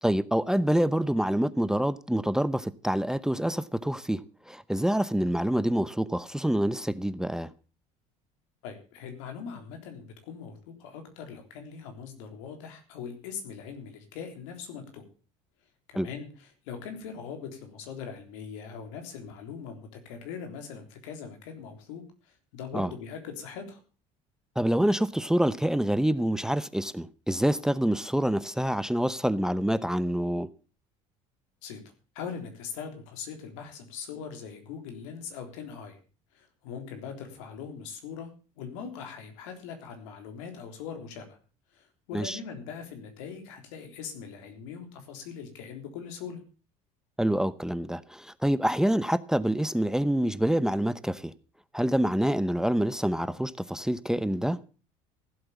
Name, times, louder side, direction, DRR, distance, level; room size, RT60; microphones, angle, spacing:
voice 1, 0.0-7.5 15.9-16.1 22.7-22.9 24.6-30.5 42.1-42.4 47.2-51.3 51.7-54.6, right 1 dB, 5° right, 0.8 m, -26 dB
voice 2, 8.6-15.0 15.9-23.8 31.6-31.8 32.2-36.0 36.3-38.3 38.6-41.4 41.7-46.4, left 6 dB, 85° left, 3.6 m, -41 dB
15.5 x 8.1 x 7.1 m
supercardioid pair, 85°, 16 cm